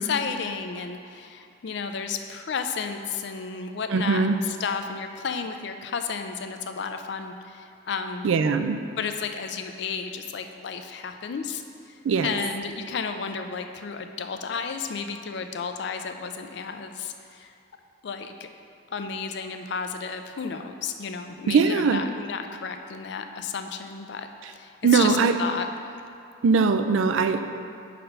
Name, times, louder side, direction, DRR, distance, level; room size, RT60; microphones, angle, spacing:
voice 1, 0.1-8.3 9.0-17.5 18.0-18.5 18.9-25.7, left 5 dB, 60° left, 6 dB, 0.4 m, -32 dB
voice 2, 3.9-4.4 8.2-8.8 12.0-12.3 21.5-22.0 24.8-25.3 26.4-27.4, right 5 dB, 75° right, 8 dB, 0.4 m, -21 dB
5.6 x 4.1 x 5.2 m, 2.5 s
head